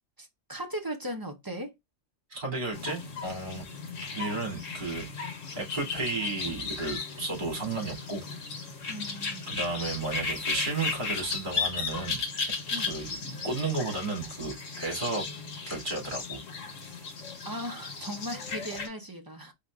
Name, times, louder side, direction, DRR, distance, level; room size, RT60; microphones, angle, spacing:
voice 1, 0.2-1.7 8.9-9.4 12.7-12.9 17.4-19.5, equal, 20° right, 0.6 m, -37 dB
voice 2, 2.3-3.6 4.1-5.1 5.6-8.2 9.5-12.2 12.9-13.1 13.4-15.2 15.7-16.4, right 3 dB, 40° right, 2.5 m, -33 dB
sound 1, 2.7-18.9, left 4 dB, 80° left, 1.5 m, -36 dB
4.4 x 3.9 x 2.4 m
omnidirectional pair, 1.3 m